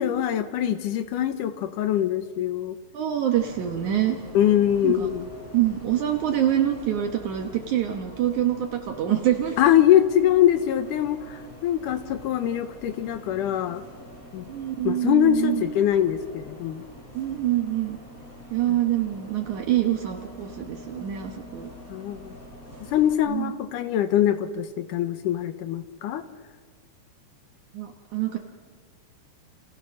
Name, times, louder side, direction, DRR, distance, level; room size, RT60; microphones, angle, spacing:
voice 1, 0.0-2.8 4.3-5.3 9.6-13.8 14.3-14.5 14.8-16.8 18.7-18.8 21.9-22.4 22.9-26.2, left 11 dB, 75° left, 10 dB, 2.4 m, -23 dB
voice 2, 2.9-4.2 4.8-5.1 5.5-9.6 14.5-15.6 17.1-18.0 18.5-21.7 23.3-23.5 27.7-28.4, right 12 dB, 65° right, 4 dB, 2.5 m, -25 dB
Bus, 3.3-23.1, equal, 25° left, 6.8 m, -45 dB
29.0 x 28.0 x 6.4 m, 1.5 s
omnidirectional pair, 3.8 m